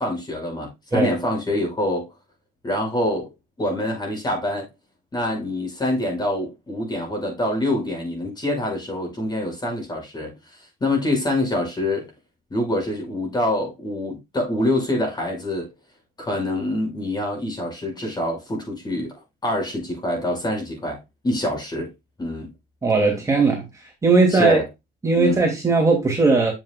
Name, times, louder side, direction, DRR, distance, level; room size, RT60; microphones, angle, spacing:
voice 1, 0.0-2.1 2.6-4.7 5.1-12.1 12.5-15.7 16.2-21.9 22.2-22.5 24.3-24.7 25.2-25.4, left 1 dB, 25° left, 5.7 m, -25 dB
voice 2, 22.8-23.7 24.0-24.6 25.0-26.5, right 3 dB, 20° right, 2.8 m, -18 dB
8.3 x 7.2 x 2.4 m
cardioid pair, 110°, 17 cm